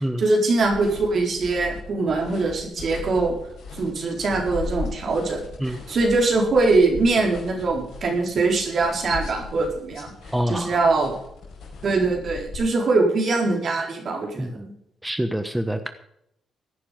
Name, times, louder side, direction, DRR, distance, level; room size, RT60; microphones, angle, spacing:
voice 1, 0.2-3.3 3.8-5.4 5.9-10.1 10.5-11.2 11.8-14.5, right 3 dB, 55° right, 1 dB, 4.4 m, -22 dB
sound 1, 0.6-12.6, left 4 dB, 70° left, 5.2 m, -38 dB
voice 2, 10.3-10.8 14.4-14.7 15.0-15.9, equal, 5° right, 8 dB, 1.2 m, -26 dB
16.5 x 9.9 x 5.3 m, 0.77 s
supercardioid pair, 55°, 0 cm